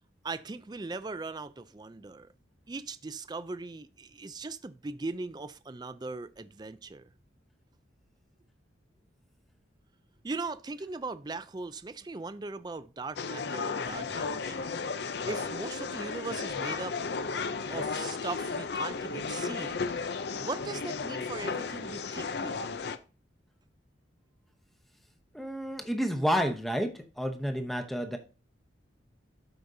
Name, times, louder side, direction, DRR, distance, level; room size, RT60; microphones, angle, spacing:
voice 1, 0.2-2.3 2.7-7.1 10.2-17.0 17.7-19.8 20.4-22.8, right 3 dB, 20° right, 0.4 m, -39 dB
sound 1, 13.2-23.0, left 4 dB, 60° left, 0.5 m, -34 dB
voice 2, 25.3-28.2, equal, ahead, 0.8 m, -30 dB
12.5 x 5.0 x 2.7 m
head